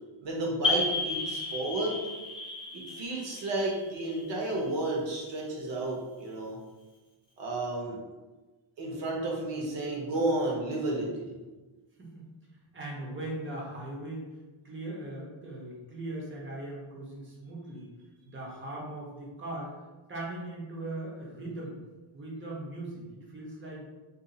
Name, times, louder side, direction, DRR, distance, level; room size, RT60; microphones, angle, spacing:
voice 1, 0.2-2.0 2.7-6.6 7.4-8.0 8.8-11.4, right 2 dB, 60° right, -2 dB, 0.9 m, -32 dB
sound 1, 0.6-5.1, left 3 dB, 15° left, 0.4 m, -33 dB
voice 2, 12.0-12.3 12.7-14.2 14.6-17.9 18.2-19.8 20.1-21.7 22.1-23.9, right 1 dB, 25° right, -3 dB, 0.7 m, -39 dB
2.7 x 2.4 x 3.8 m, 1.2 s
wide cardioid pair, 180°, 50 cm